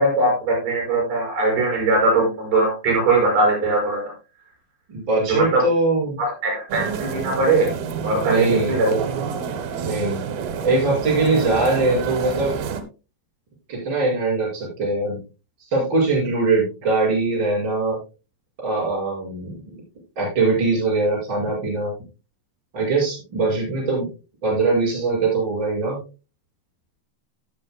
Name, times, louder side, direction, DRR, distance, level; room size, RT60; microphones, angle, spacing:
voice 1, 0.0-4.0 5.3-5.6 6.2-7.7 8.0-9.0, right 2 dB, 60° right, -1 dB, 7.0 m, -20 dB
voice 2, 4.9-6.2 8.2-8.8 9.8-10.2 10.6-12.6 13.7-15.2 15.6-18.0 18.6-19.5 20.2-21.9 22.7-24.1 24.4-26.0, right 3 dB, 30° right, -4 dB, 6.2 m, -21 dB
sound 1, 6.7-12.8, right 7 dB, 90° right, 3.1 m, -28 dB
17.5 x 7.8 x 2.2 m, 0.31 s
omnidirectional pair, 4.3 m